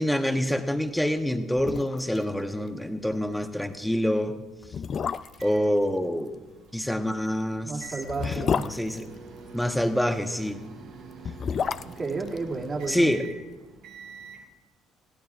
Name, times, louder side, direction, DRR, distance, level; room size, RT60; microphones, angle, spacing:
voice 1, 0.0-4.3 5.4-6.3 6.7-7.9 8.2-9.1 9.5-10.6 12.9-13.2, equal, 5° left, 6 dB, 1.2 m, -26 dB
sound 1, 1.2-1.3 1.6-2.2 2.5-2.6 3.0-3.2 3.9-4.0 4.6-5.6 7.1-9.8 11.0-13.3 13.5-13.6, left 7 dB, 50° left, 0.4 m, -31 dB
sound 2, 5.3-14.4, right 4 dB, 75° right, 1.8 m, -46 dB
voice 2, 7.6-8.6 11.8-13.1, right 3 dB, 40° right, -2 dB, 2.5 m, -32 dB
21.5 x 15.5 x 2.5 m, 1.2 s
supercardioid pair, 70°, 0 cm